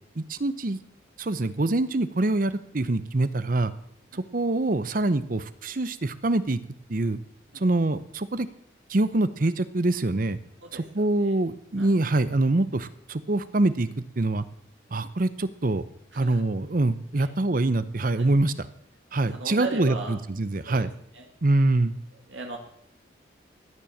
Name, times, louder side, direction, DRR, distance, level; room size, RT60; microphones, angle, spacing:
voice 1, 0.2-0.8 1.2-3.7 4.1-6.6 6.9-7.2 7.5-8.5 8.9-10.4 10.7-14.4 14.9-15.8 16.1-18.7 19.1-20.9 21.4-21.9, right 2 dB, 45° right, 15 dB, 0.7 m, -25 dB
voice 2, 10.6-11.4 11.8-11.9 16.1-16.4 17.2-17.3 18.1-18.3 19.3-20.2 20.7-20.8 21.1-21.2 22.3-22.6, right 3 dB, 75° right, 2 dB, 2.1 m, -37 dB
15.5 x 9.9 x 7.3 m, 0.70 s
head